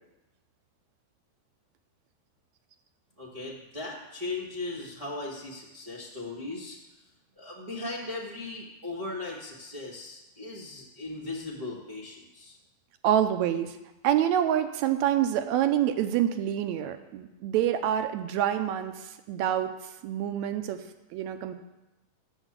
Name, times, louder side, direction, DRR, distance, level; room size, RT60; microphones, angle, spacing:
voice 1, 3.2-6.8 7.4-12.6, left 2 dB, 35° right, -5 dB, 0.5 m, -38 dB
voice 2, 13.0-13.8 14.0-20.8 21.1-21.6, right 10 dB, 80° right, 9 dB, 1.9 m, -27 dB
8.1 x 7.1 x 7.4 m, 1.0 s
omnidirectional pair, 3.4 m